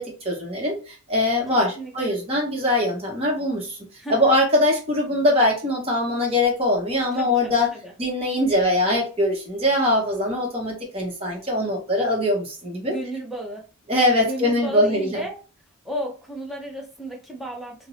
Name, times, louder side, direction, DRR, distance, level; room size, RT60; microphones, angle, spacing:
voice 1, 0.0-3.8 4.1-7.7 8.0-12.9 13.9-15.2, left 1 dB, 25° right, -2 dB, 0.9 m, -22 dB
voice 2, 1.8-2.2 4.0-4.2 7.1-7.9 12.8-13.7 14.1-15.4 15.8-17.9, right 1 dB, ahead, -1 dB, 0.6 m, -33 dB
2.5 x 2.0 x 2.8 m, 0.34 s
head